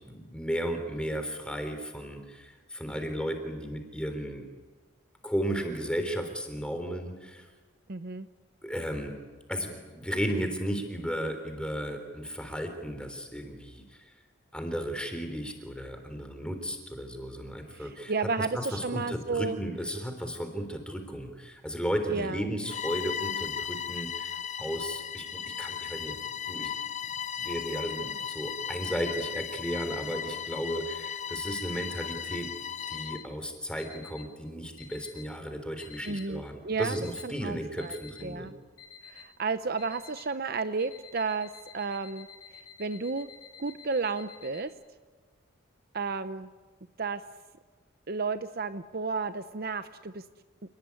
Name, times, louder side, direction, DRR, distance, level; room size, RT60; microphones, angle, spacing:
voice 1, 0.1-4.4 5.2-7.5 8.6-9.1 9.5-14.0 14.5-18.1 18.4-26.2 26.5-26.7 27.4-32.5 32.9-38.5, equal, 5° left, 6 dB, 3.6 m, -34 dB
voice 2, 7.9-8.3 17.7-19.6 22.1-22.4 36.0-37.0 37.2-38.5 39.1-42.3 42.8-43.3 43.6-44.7 45.9-46.5 47.0-47.2 48.1-50.2, right 4 dB, 50° right, 11 dB, 0.8 m, -32 dB
Bowed string instrument, 22.6-33.3, left 8 dB, 35° left, 0.7 m, -36 dB
sound 1, 29.9-30.2 30.8-31.2 31.8-32.2 32.8-33.3 33.8-34.3 34.8-35.3 35.8-36.3 36.8-37.3 37.8-38.3 38.8-39.3 39.8-40.3 40.8-44.6, left 7 dB, 85° left, 4.2 m, -51 dB
29.0 x 19.0 x 9.7 m, 1.3 s
head